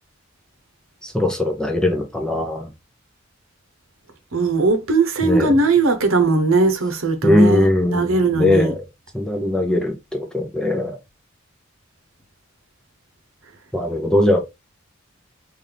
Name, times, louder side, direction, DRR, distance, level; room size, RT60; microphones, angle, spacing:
voice 1, 1.0-2.7 5.2-5.5 7.2-8.8 9.1-11.0 13.7-14.4, left 1 dB, 5° left, 0.6 m, -20 dB
voice 2, 4.3-8.7, right 3 dB, 90° right, 0.9 m, -19 dB
3.9 x 2.6 x 3.3 m
head